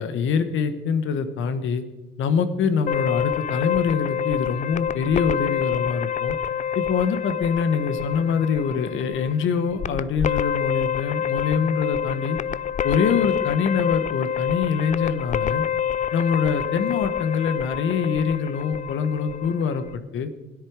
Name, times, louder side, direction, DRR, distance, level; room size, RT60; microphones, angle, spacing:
voice 1, 0.0-1.8 2.2-6.4 6.7-12.4 12.8-15.7 16.1-20.3, left 6 dB, 80° left, 11 dB, 1.2 m, -24 dB
sound 1, 2.9-20.0, left 9 dB, 40° left, 0.4 m, -27 dB
16.5 x 10.0 x 4.8 m, 1.1 s
cardioid pair, 90°, 20 cm